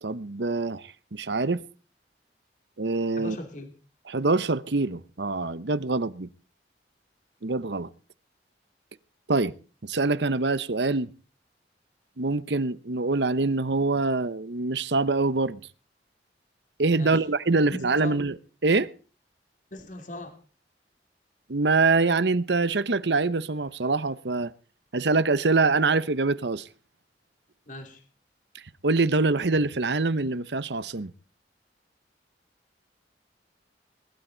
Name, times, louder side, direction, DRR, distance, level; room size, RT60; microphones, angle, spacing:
voice 1, 0.0-1.6 2.8-3.4 4.1-6.3 7.4-7.9 9.3-9.5 9.8-11.1 12.2-15.6 16.8-18.4 18.6-18.9 21.5-24.5 24.9-26.7 28.8-31.1, right 3 dB, 75° right, 0.9 m, -24 dB
voice 2, 3.1-3.7 16.9-17.2 18.0-18.2 19.7-20.4 27.7-28.0, left 1 dB, 45° left, 2.7 m, -39 dB
20.5 x 12.5 x 3.9 m
head